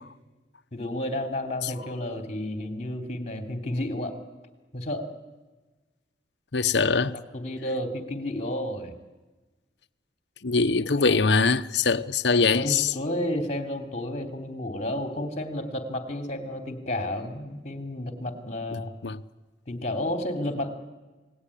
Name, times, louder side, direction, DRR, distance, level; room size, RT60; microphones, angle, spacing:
voice 1, 0.7-4.2 4.7-5.1 6.7-8.9 11.0-11.2 12.3-18.9 19.7-20.7, left 1 dB, 40° left, 3.4 m, -31 dB
voice 2, 6.5-7.1 10.4-12.9 18.7-19.2, left 4 dB, 70° left, 0.9 m, -23 dB
29.0 x 19.0 x 10.0 m
head